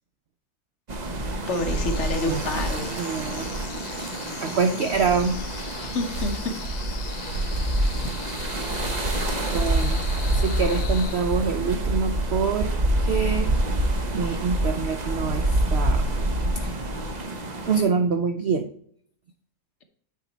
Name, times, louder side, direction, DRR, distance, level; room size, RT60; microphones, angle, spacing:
sound 1, 0.9-17.8, right 1 dB, 35° right, 0.7 m, -26 dB
sound 2, 1.5-11.7, left 11 dB, 85° left, 1.2 m, -41 dB
voice 1, 1.5-2.9 5.8-6.8, left 2 dB, 50° left, 6 dB, 1.1 m, -29 dB
voice 2, 2.9-3.5 3.9-4.0 4.4-6.0 9.5-10.0 10.3-12.7 13.0-13.5 14.1-16.1 16.6-16.7 17.6-18.7, right 5 dB, 85° right, 7 dB, 0.5 m, -26 dB
8.9 x 4.6 x 4.1 m, 0.63 s
omnidirectional pair, 1.8 m